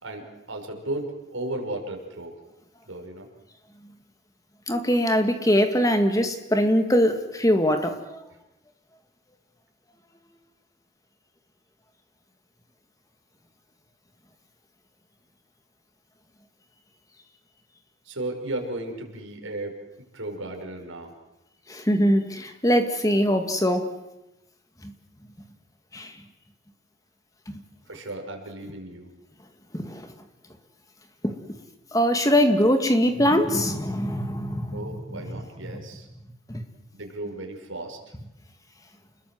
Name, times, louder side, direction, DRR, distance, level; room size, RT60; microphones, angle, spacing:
voice 1, 0.0-2.3 2.9-3.3 18.0-19.8 20.1-21.1 27.9-29.1 34.7-36.1 36.9-38.0, right 2 dB, 70° right, 2 dB, 5.8 m, -35 dB
voice 2, 4.7-8.2 21.7-23.9 24.8-24.9 25.9-26.1 27.5-27.6 29.7-30.1 31.2-31.4 31.9-35.3 35.7-35.8 36.5-36.6, equal, 15° left, 7 dB, 2.2 m, -22 dB
29.0 x 21.0 x 7.8 m, 0.91 s
head